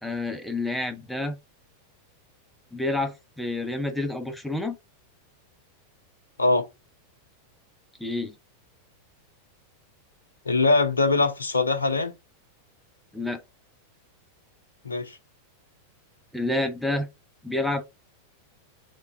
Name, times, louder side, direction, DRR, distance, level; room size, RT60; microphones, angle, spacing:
voice 1, 0.0-1.4 2.7-4.7 8.0-8.3 13.1-13.4 16.3-17.1 17.4-17.8, left 2 dB, ahead, 0.7 m, -28 dB
voice 2, 10.5-12.1 14.8-15.2, left 3 dB, 75° left, 0.7 m, -22 dB
3.7 x 3.6 x 2.6 m
figure-of-eight pair, 90°, 0 cm